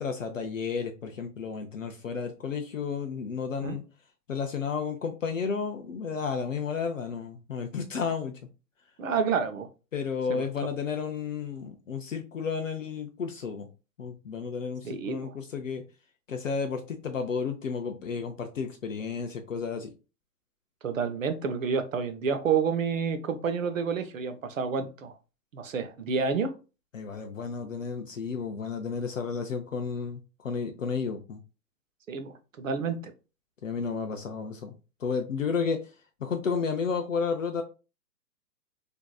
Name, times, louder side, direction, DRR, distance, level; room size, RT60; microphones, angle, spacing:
voice 1, 0.0-3.8 4.3-8.3 9.9-13.7 14.0-15.8 16.3-19.9 26.9-31.4 33.6-34.7 35.0-35.8 36.2-37.6, left 5 dB, 50° left, 0.5 m, -32 dB
voice 2, 9.0-9.7 10.3-10.4 14.8-15.3 20.8-25.1 25.5-26.6 32.1-33.1, right 6 dB, 50° right, 0.6 m, -29 dB
4.6 x 2.6 x 2.3 m
hypercardioid pair, 170°, 50 cm